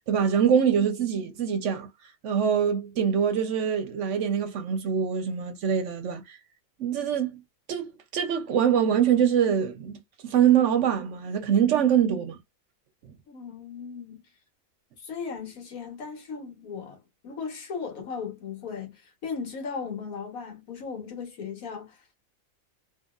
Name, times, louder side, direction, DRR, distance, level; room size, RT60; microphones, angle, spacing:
voice 1, 0.1-1.9 2.2-6.4 6.8-7.4 7.7-12.4 13.0-13.1, right 8 dB, 65° right, 0.9 m, -24 dB
voice 2, 13.3-14.2 15.0-17.0 17.2-22.0, left 5 dB, 85° left, 1.6 m, -37 dB
2.8 x 2.7 x 2.4 m
omnidirectional pair, 1.5 m